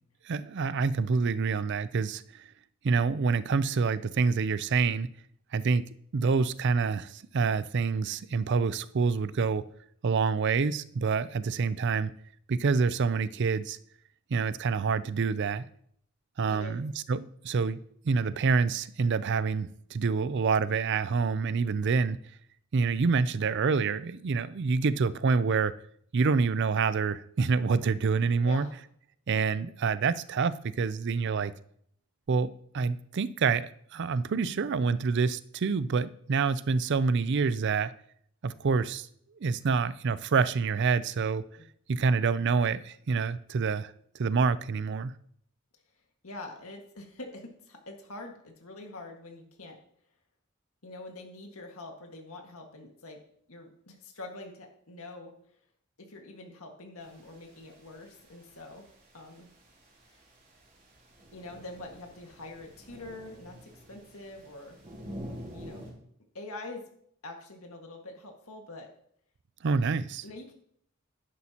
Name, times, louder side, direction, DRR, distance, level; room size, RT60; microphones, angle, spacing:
voice 1, 0.2-2.5 2.8-5.1 5.5-5.9 6.1-9.7 10.0-12.1 12.5-13.8 14.3-15.7 16.4-17.8 18.0-22.2 22.7-25.7 26.1-28.7 29.3-31.5 32.3-37.9 38.4-39.1 39.4-41.4 41.9-45.2 69.6-70.2, right 5 dB, 55° right, 0.4 m, -27 dB
voice 2, 16.5-16.8 28.4-28.7 41.6-41.7 46.2-49.8 50.8-53.2 53.5-55.3 56.0-58.9 59.1-59.5 60.1-60.2 61.3-64.8 65.5-65.9 66.3-66.9 67.2-68.9 70.0-70.5, left 2 dB, 85° left, 1.8 m, -45 dB
sound 1, 57.0-65.9, equal, 40° right, 3.4 m, -48 dB
11.0 x 10.5 x 2.9 m
head